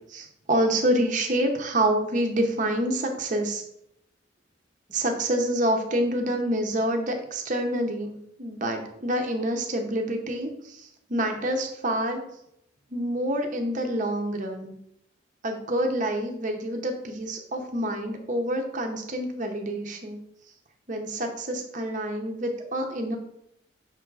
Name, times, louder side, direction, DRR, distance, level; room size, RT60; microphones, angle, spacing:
voice 1, 0.1-3.6 4.9-12.2 12.9-14.7 15.4-20.2 20.9-23.2, right 1 dB, 40° right, 3 dB, 0.8 m, -27 dB
6.0 x 3.6 x 4.7 m, 0.76 s
head